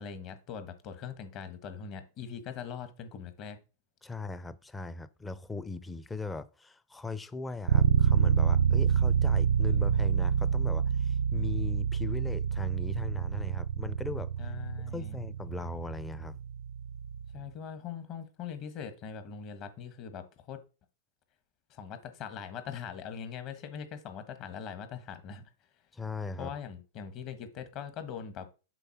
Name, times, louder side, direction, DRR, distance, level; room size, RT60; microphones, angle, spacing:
voice 1, 0.0-3.6 14.4-15.2 17.3-20.6 21.7-25.5 26.4-28.5, left 7 dB, 40° left, 1.3 m, -41 dB
voice 2, 4.0-14.3 14.9-16.4 25.9-26.5, left 3 dB, 10° left, 0.5 m, -39 dB
sound 1, 7.7-17.4, right 7 dB, 90° right, 0.3 m, -27 dB
6.9 x 3.9 x 5.9 m
hypercardioid pair, 135°, 0 cm